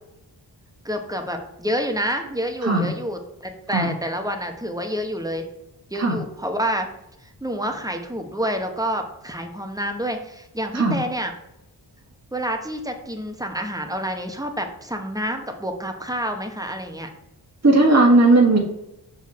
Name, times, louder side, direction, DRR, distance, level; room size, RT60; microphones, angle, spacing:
voice 1, 0.8-5.4 5.9-6.9 7.4-11.3 12.3-17.1, equal, 10° right, 4 dB, 1.1 m, -28 dB
voice 2, 17.6-18.6, right 2 dB, 35° right, 0 dB, 1.7 m, -16 dB
5.8 x 4.1 x 4.3 m, 0.87 s
cardioid pair, 55°, 44 cm